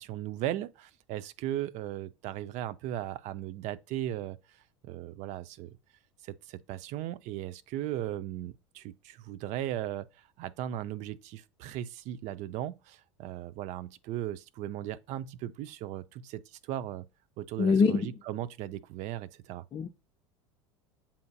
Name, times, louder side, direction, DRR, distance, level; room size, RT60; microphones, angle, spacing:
voice 1, 0.0-4.6 4.8-5.8 6.2-17.1 17.4-19.7, right 12 dB, 50° right, 0.5 m, -37 dB
voice 2, 17.6-18.1 19.7-19.9, left 5 dB, 30° left, 0.6 m, -24 dB
7.0 x 2.5 x 2.3 m
hypercardioid pair, 80°, 16 cm